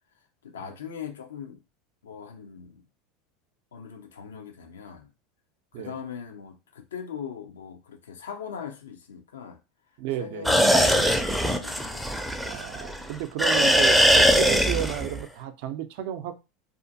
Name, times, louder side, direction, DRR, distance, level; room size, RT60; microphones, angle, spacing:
voice 1, 0.4-1.6 2.0-2.8 3.7-5.1 5.7-9.6 10.2-12.2 13.0-13.1, left 7 dB, 85° left, 0.4 m, -40 dB
voice 2, 10.0-10.5 12.4-16.3, right 11 dB, 65° right, 0.4 m, -33 dB
sound 1, 10.4-13.0 13.4-15.2, equal, ahead, 0.4 m, -21 dB
2.4 x 2.4 x 2.6 m
hypercardioid pair, 85°, 0 cm